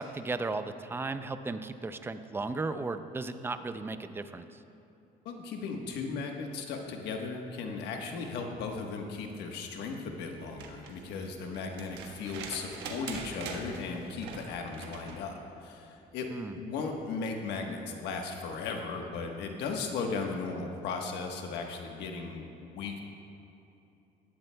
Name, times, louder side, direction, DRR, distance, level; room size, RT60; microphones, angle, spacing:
voice 1, 0.0-4.6 16.3-16.6, right 3 dB, 15° right, 10 dB, 0.5 m, -35 dB
voice 2, 5.2-16.3 16.5-23.0, left 4 dB, 85° left, 2 dB, 1.3 m, -36 dB
sound 1, 10.4-15.3 16.9-17.0, right 4 dB, 90° right, 1.3 m, -43 dB
17.5 x 12.0 x 2.3 m, 2.9 s
cardioid pair, 110°, 17 cm